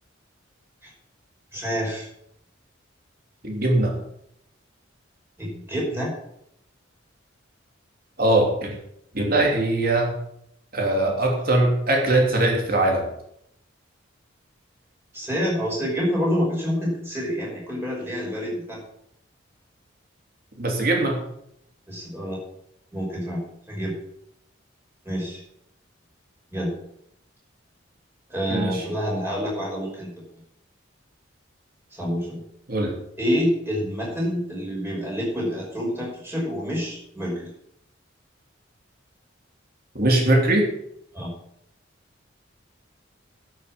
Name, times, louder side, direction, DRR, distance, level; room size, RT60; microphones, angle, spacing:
voice 1, 1.5-2.1 5.4-6.1 15.1-18.8 21.9-22.4 22.9-23.4 23.7-24.0 25.0-25.4 26.5-26.8 28.3-30.2 31.9-32.4 33.2-37.5 41.1-41.3, equal, 10° right, -4 dB, 5.5 m, -27 dB
voice 2, 3.4-4.0 8.2-8.8 9.1-10.1 10.7-13.1 20.6-21.2 28.5-28.8 32.7-32.9 39.9-40.7, right 1 dB, 50° right, 1 dB, 2.9 m, -21 dB
11.5 x 7.0 x 7.5 m, 0.74 s
head